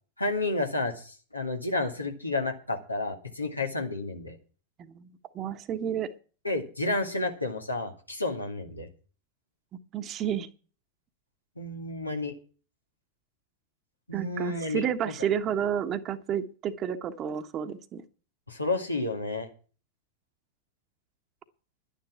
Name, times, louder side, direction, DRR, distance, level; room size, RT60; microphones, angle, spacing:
voice 1, 0.2-4.4 6.4-8.9 11.6-12.3 14.1-15.1 18.5-19.5, left 2 dB, 85° left, 3 dB, 2.1 m, -31 dB
voice 2, 4.8-6.1 9.9-10.5 14.1-18.0, right 9 dB, 30° right, 9 dB, 1.3 m, -31 dB
11.0 x 10.5 x 5.9 m, 0.38 s
figure-of-eight pair, 90°, 0 cm